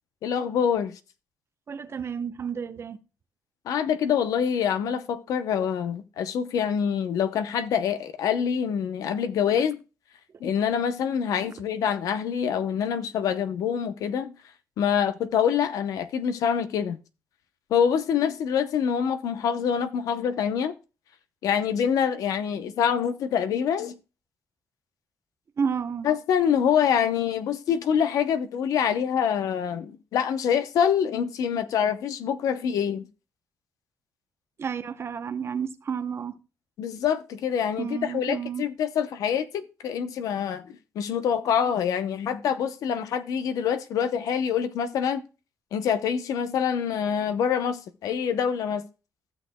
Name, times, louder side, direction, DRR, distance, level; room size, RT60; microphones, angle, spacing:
voice 1, 0.2-0.9 3.7-9.8 10.4-14.3 14.8-17.0 17.7-20.7 21.4-23.9 26.0-33.1 36.8-45.2 45.7-48.9, left 8 dB, 90° left, 0.8 m, -25 dB
voice 2, 1.7-3.0 25.6-26.1 34.6-36.4 37.8-38.6, right 6 dB, 45° right, 0.8 m, -31 dB
15.0 x 6.5 x 2.2 m
cardioid pair, 95°, 6 cm